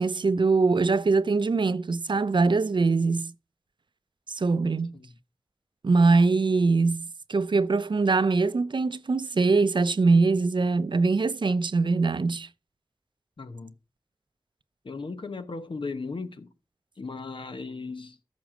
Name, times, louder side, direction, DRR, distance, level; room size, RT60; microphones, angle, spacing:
voice 1, 0.0-3.3 4.3-4.9 5.8-12.5, right 3 dB, 65° right, 0.6 m, -23 dB
voice 2, 13.4-13.7 14.8-16.5 17.0-18.2, left 4 dB, 75° left, 1.0 m, -36 dB
14.0 x 6.1 x 4.9 m
wide cardioid pair, 70°, 9 cm